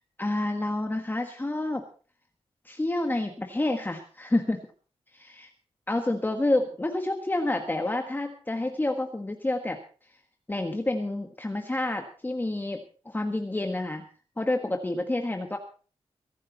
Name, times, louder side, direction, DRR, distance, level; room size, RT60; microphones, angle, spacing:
voice 1, 0.2-1.8 2.6-4.6 5.1-5.5 5.9-9.8 10.5-14.0 14.4-15.6, left 2 dB, 15° left, 4 dB, 1.5 m, -29 dB
22.5 x 11.5 x 4.1 m, 0.41 s
wide cardioid pair, 125°, 11 cm